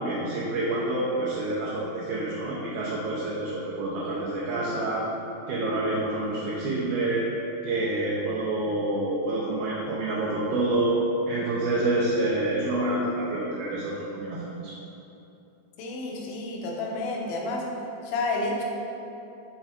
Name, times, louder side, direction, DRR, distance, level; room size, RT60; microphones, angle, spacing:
voice 1, 0.0-5.1 5.5-7.3 7.6-11.0 11.3-14.7, right 2 dB, 75° right, -7 dB, 2.3 m, -27 dB
voice 2, 15.8-17.7 18.0-18.6, left 2 dB, 75° left, -1 dB, 2.3 m, -30 dB
7.0 x 3.5 x 4.3 m, 2.9 s
omnidirectional pair, 4.8 m